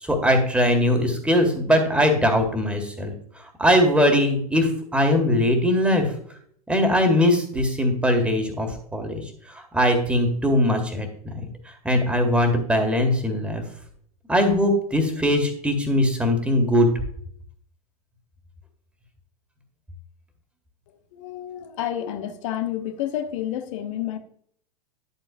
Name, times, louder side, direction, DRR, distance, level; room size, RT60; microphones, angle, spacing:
voice 1, 0.1-3.1 3.6-6.0 6.7-9.2 9.7-11.4 11.8-13.6 14.3-16.9, left 1 dB, 5° right, 2.0 m, -20 dB
voice 2, 21.1-24.2, left 11 dB, 50° left, 1.1 m, -29 dB
11.0 x 8.1 x 2.6 m
figure-of-eight pair, 90°, 20 cm